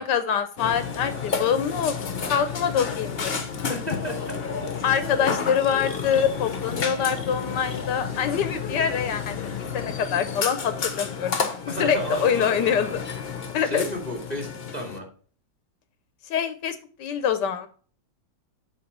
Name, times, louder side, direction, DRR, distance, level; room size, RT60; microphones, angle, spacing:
voice 1, 0.0-2.0 2.3-3.7 4.8-9.5 9.7-13.0 13.5-13.8 16.3-17.7, left 8 dB, 75° left, 10 dB, 1.3 m, -25 dB
Burping eructation, 0.6-15.0, left 6 dB, 40° left, 0.9 m, -31 dB
voice 2, 3.7-4.3 11.7-13.0 13.6-15.1, equal, 20° right, 0 dB, 2.4 m, -33 dB
7.8 x 4.0 x 5.4 m, 0.42 s
omnidirectional pair, 1.9 m